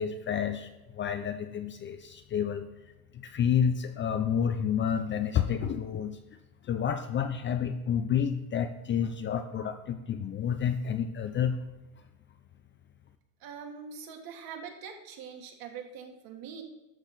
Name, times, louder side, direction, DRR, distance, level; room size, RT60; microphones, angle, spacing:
voice 1, 0.0-2.7 3.1-6.2 6.6-11.6, left 8 dB, 25° left, 8 dB, 0.5 m, -29 dB
voice 2, 13.4-16.6, right 6 dB, 50° right, 4 dB, 1.9 m, -43 dB
12.5 x 6.5 x 4.0 m, 1.0 s
supercardioid pair, 115°, 46 cm